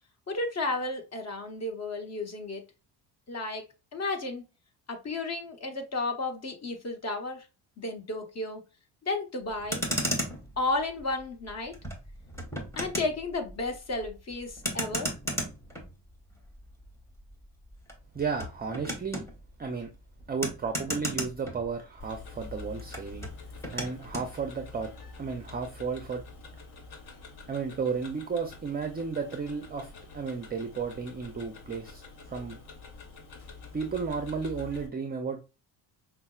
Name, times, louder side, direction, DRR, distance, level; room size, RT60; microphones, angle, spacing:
voice 1, 0.3-2.6 3.3-3.6 3.9-4.4 4.9-7.4 7.8-8.6 9.0-9.8 10.6-11.8 12.8-15.1, left 2 dB, 35° left, 1.1 m, -33 dB
Motor vehicle (road), 9.5-22.1 22.4-24.3, equal, 5° left, 1.1 m, -36 dB
voice 2, 18.1-19.2 19.6-19.9 20.3-23.3 23.7-24.9 25.2-26.2 27.5-32.6 33.7-35.4, right 5 dB, 20° right, 0.5 m, -33 dB
Tick-tock, 22.0-34.9, left 4 dB, 55° left, 1.3 m, -47 dB
5.4 x 2.0 x 2.4 m
supercardioid pair, 80°, 46 cm